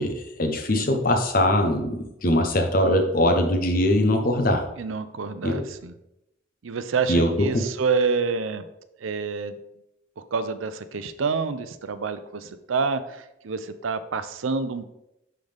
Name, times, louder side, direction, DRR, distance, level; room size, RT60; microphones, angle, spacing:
voice 1, 0.0-4.6 5.4-5.6 7.1-7.6, left 1 dB, 45° left, 4 dB, 0.9 m, -22 dB
voice 2, 4.8-5.9 6.6-8.6 9.0-9.6 10.2-14.9, right 5 dB, 90° right, 12 dB, 0.5 m, -28 dB
10.5 x 3.9 x 3.4 m, 0.86 s
head